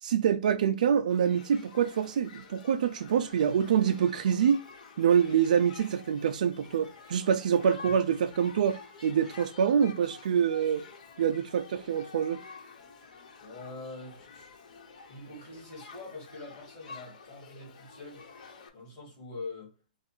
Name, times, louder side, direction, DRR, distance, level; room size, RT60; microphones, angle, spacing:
voice 1, 0.0-4.6 5.0-10.8 11.2-12.4, right 8 dB, 65° right, 0.3 m, -26 dB
Shout / Human group actions, 1.1-18.7, left 5 dB, 60° left, 1.2 m, -49 dB
voice 2, 13.4-14.7 15.1-18.2 18.7-19.7, left 3 dB, 25° left, 2.5 m, -44 dB
4.2 x 2.4 x 4.3 m
hypercardioid pair, 165°, 5 cm